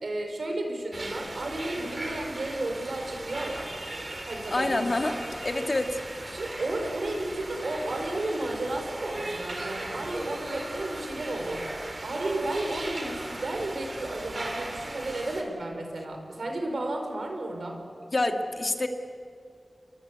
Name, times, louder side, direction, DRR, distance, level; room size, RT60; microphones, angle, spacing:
voice 1, 0.0-3.7 4.3-5.2 6.3-11.7 12.0-17.8, right 2 dB, 85° right, 3 dB, 5.0 m, -33 dB
sound 1, 0.9-15.4, right 2 dB, 50° right, 3.9 m, -37 dB
voice 2, 4.5-5.1 5.4-6.0 18.1-18.9, left 2 dB, 55° left, 5 dB, 2.3 m, -26 dB
30.0 x 22.5 x 8.3 m, 2.3 s
wide cardioid pair, 45°, 0 cm